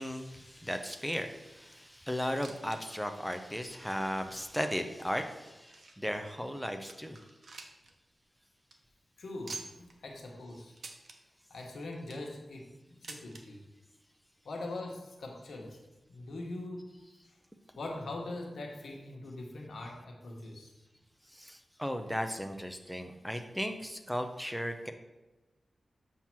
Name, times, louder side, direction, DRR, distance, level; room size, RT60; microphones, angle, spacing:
voice 1, 0.0-7.2 21.3-24.9, equal, ahead, 6 dB, 0.5 m, -36 dB
sound 1, 2.3-2.8 3.1-3.2 3.9-4.0 4.7-6.1 6.6-6.7 6.9-7.9 8.2-8.3 8.6-8.8 9.5-9.9 10.8-11.2 11.8-12.3 13.0-13.4 14.4-14.5 14.7-14.8 15.6-15.7, right 3 dB, 60° right, 0.8 m, -47 dB
voice 2, 9.2-10.7 11.5-12.7 13.0-13.6 14.4-15.8 16.1-16.9 17.8-20.7, left 2 dB, 85° left, 0 dB, 1.3 m, -42 dB
7.2 x 2.9 x 6.0 m, 1.1 s
wide cardioid pair, 120°, 0 cm